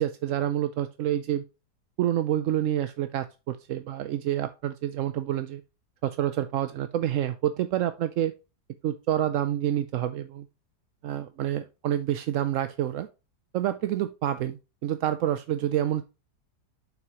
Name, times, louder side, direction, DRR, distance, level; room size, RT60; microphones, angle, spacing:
voice 1, 0.0-1.4 2.0-5.6 6.0-8.4 8.8-10.5 11.0-13.1 13.5-16.0, right 11 dB, 70° right, 11 dB, 0.7 m, -28 dB
7.5 x 5.9 x 2.9 m, 0.29 s
omnidirectional pair, 1.8 m